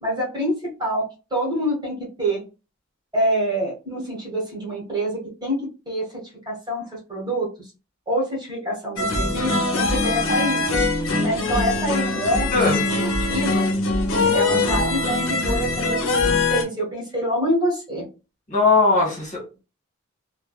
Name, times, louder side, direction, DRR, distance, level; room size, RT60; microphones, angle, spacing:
voice 1, 0.0-2.4 3.1-6.2 6.4-7.7 8.1-10.8 11.2-13.7 14.3-18.0, equal, 20° right, -4 dB, 1.4 m, -26 dB
sound 1, 9.0-16.6, left 2 dB, 65° left, 0.8 m, -22 dB
voice 2, 12.5-12.8 18.5-19.6, left 3 dB, 35° left, -3 dB, 1.6 m, -19 dB
3.3 x 2.3 x 2.4 m, 0.31 s
head